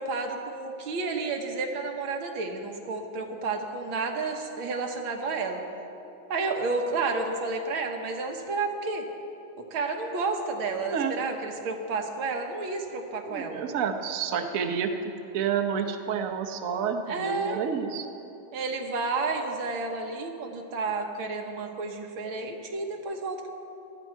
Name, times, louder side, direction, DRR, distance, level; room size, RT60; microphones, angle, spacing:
voice 1, 0.0-5.6 6.3-9.1 9.6-13.6 17.1-17.6 18.5-23.5, right 3 dB, 85° right, 3 dB, 2.0 m, -31 dB
voice 2, 13.3-18.1, right 7 dB, 55° right, 5 dB, 1.0 m, -29 dB
17.0 x 12.0 x 4.6 m, 2.9 s
omnidirectional pair, 2.2 m